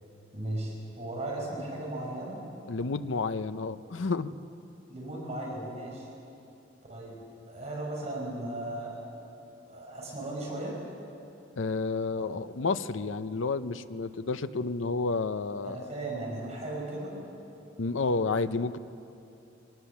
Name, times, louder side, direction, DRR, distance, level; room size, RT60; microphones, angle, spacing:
voice 1, 0.3-2.4 4.9-6.1 6.9-7.2 7.5-9.0 9.7-10.8 12.1-12.2 15.6-17.2, right 1 dB, 35° right, -3 dB, 5.7 m, -36 dB
voice 2, 2.7-4.3 11.6-15.8 17.8-18.8, left 3 dB, 80° left, 12 dB, 0.7 m, -30 dB
24.0 x 18.5 x 7.2 m, 2.7 s
head